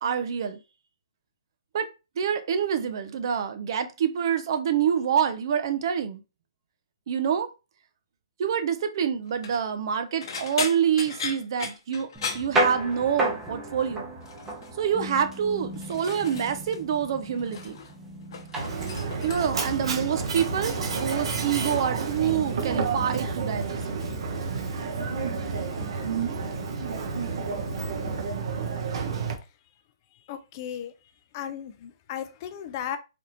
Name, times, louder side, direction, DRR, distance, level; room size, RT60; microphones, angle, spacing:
voice 1, 0.0-0.6 1.7-1.9 2.2-6.2 7.1-7.5 8.4-12.1 12.3-14.1 14.8-17.8 19.2-24.0, right 8 dB, 50° right, 0.5 m, -26 dB
sound 1, 9.2-9.6 10.2-13.2 13.5-13.9 14.2-14.7 15.4-16.8 17.1-17.9 18.2-19.7 20.6-20.9 21.3-23.4 23.6-24.2 24.5-24.8 26.0-26.1, left 6 dB, 55° left, 0.7 m, -38 dB
sound 2, 12.1-28.3, right 1 dB, 10° right, 0.7 m, -36 dB
Mechanisms, 18.6-29.3, right 5 dB, 75° right, 0.8 m, -30 dB
voice 2, 30.3-30.9 31.3-33.0, left 9 dB, 35° left, 0.3 m, -35 dB
3.4 x 2.3 x 2.8 m
hypercardioid pair, 150°, 3 cm